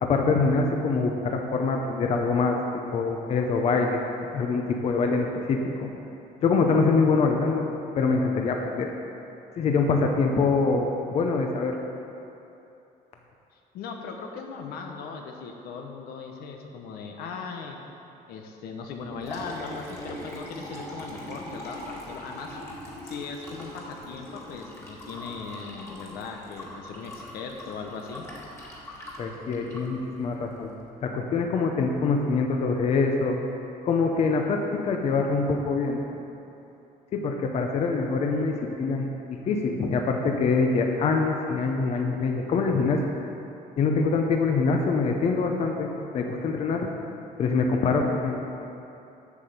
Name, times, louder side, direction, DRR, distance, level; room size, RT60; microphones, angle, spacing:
voice 1, 0.0-2.6 2.9-4.0 4.3-5.9 6.4-7.7 7.9-8.9 9.6-11.8 29.2-30.7 31.0-33.4 33.8-36.2 37.1-43.0 43.8-46.9 47.4-48.4, left 4 dB, 45° left, 2 dB, 0.8 m, -24 dB
voice 2, 13.7-17.8 18.3-22.6 23.0-28.2, left 5 dB, 85° left, 3 dB, 1.2 m, -38 dB
Liquid, 18.9-30.8, equal, 15° left, 1.8 m, -41 dB
8.3 x 7.6 x 6.8 m, 2.9 s
cardioid pair, 160°, 15 cm